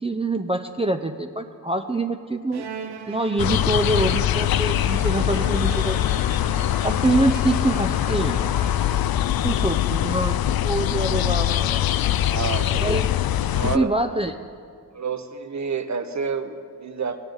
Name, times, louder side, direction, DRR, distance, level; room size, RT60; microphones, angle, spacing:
voice 1, 0.0-2.6 3.1-6.0 6.8-8.4 9.4-11.9 12.7-13.1 13.7-14.3, right 2 dB, 15° right, 6 dB, 0.6 m, -25 dB
Bowed string instrument, 2.5-9.5, right 7 dB, 80° right, 0.8 m, -39 dB
sound 1, 3.4-13.8, left 12 dB, 70° left, 0.5 m, -23 dB
sound 2, 5.0-11.4, left 6 dB, 85° left, 1.1 m, -39 dB
voice 2, 12.2-12.8 13.5-13.9 14.9-17.2, right 5 dB, 45° right, 8 dB, 1.1 m, -29 dB
16.0 x 9.7 x 4.0 m, 2.1 s
cardioid pair, 50°, 38 cm